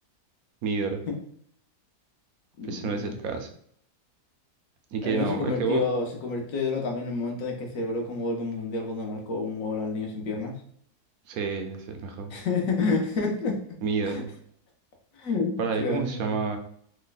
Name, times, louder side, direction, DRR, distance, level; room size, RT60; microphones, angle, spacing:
voice 1, 0.6-1.0 2.7-3.5 4.9-5.8 11.3-12.3 13.8-14.3 15.6-16.6, right 5 dB, 70° right, 5 dB, 0.9 m, -29 dB
voice 2, 2.6-3.1 5.0-10.5 12.3-13.6 14.0-14.2 15.2-16.4, left 3 dB, 60° left, 2 dB, 1.1 m, -29 dB
3.2 x 2.2 x 3.9 m, 0.64 s
omnidirectional pair, 1.7 m